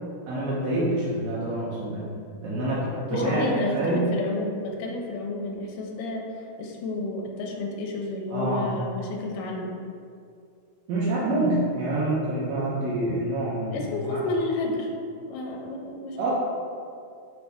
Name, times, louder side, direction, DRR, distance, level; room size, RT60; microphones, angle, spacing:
voice 1, 0.3-2.1 2.4-4.1 8.3-8.8 10.9-14.2 16.2-16.3, right 1 dB, 75° right, -7 dB, 1.7 m, -27 dB
voice 2, 3.1-9.7 13.7-14.9 15.3-16.2, left 2 dB, 85° left, 0 dB, 2.1 m, -31 dB
5.9 x 2.6 x 3.4 m, 2.3 s
omnidirectional pair, 3.7 m